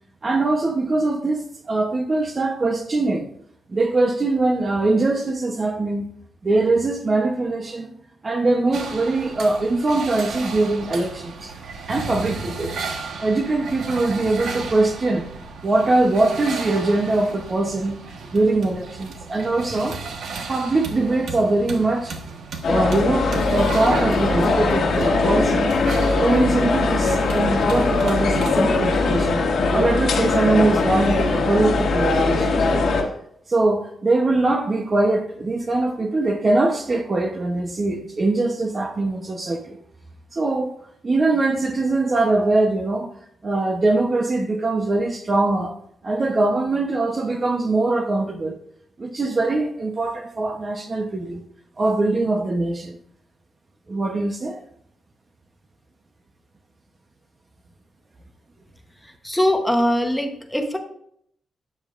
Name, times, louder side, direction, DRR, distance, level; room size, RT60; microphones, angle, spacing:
voice 1, 0.2-3.3 3.7-6.1 6.4-7.9 8.2-11.5 11.9-12.9 13.2-15.3 15.6-18.0 18.3-20.0 20.5-22.2 22.7-25.7 26.2-29.4 29.7-32.8 33.5-39.8 40.3-40.7 41.0-43.1 43.4-45.8 46.0-48.6 49.0-51.4 51.8-53.0 53.9-54.6, right 2 dB, 25° right, 0.9 m, -22 dB
sound 1, 8.7-28.5, right 4 dB, 75° right, 1.3 m, -34 dB
sound 2, 22.6-33.0, left 3 dB, 65° left, 1.7 m, -20 dB
voice 2, 59.0-60.8, left 1 dB, 5° left, 0.9 m, -22 dB
12.5 x 8.8 x 2.5 m
wide cardioid pair, 165°, 0 cm